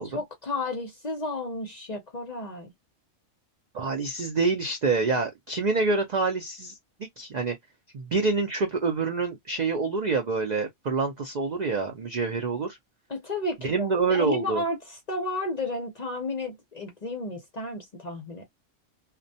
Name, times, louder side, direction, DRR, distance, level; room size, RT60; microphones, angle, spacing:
voice 1, 0.0-2.7 13.1-18.5, left 2 dB, 45° left, 0.6 m, -32 dB
voice 2, 3.7-7.5 7.9-12.8 13.6-14.6, right 4 dB, 65° right, 0.4 m, -27 dB
2.2 x 2.1 x 2.6 m
omnidirectional pair, 1.3 m